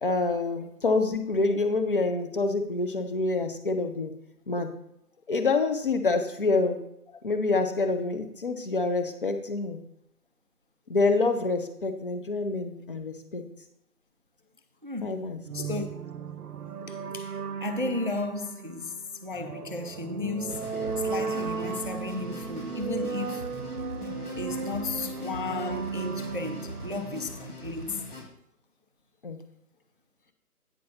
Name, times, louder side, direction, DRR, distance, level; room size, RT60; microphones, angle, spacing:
voice 1, 0.0-4.1 4.5-4.7 5.3-6.8 7.2-9.8 10.9-13.4 15.0-15.4 29.2-29.4, left 3 dB, 35° left, 1.0 m, -27 dB
voice 2, 14.8-15.2 15.5-15.9 16.9-23.5 24.3-28.0, left 3 dB, 35° right, 0.4 m, -34 dB
sound 1, 15.5-28.0, right 5 dB, 70° right, 0.7 m, -36 dB
sound 2, 20.5-28.2, left 2 dB, 75° left, 2.9 m, -41 dB
9.3 x 4.6 x 5.8 m
figure-of-eight pair, 160°, 46 cm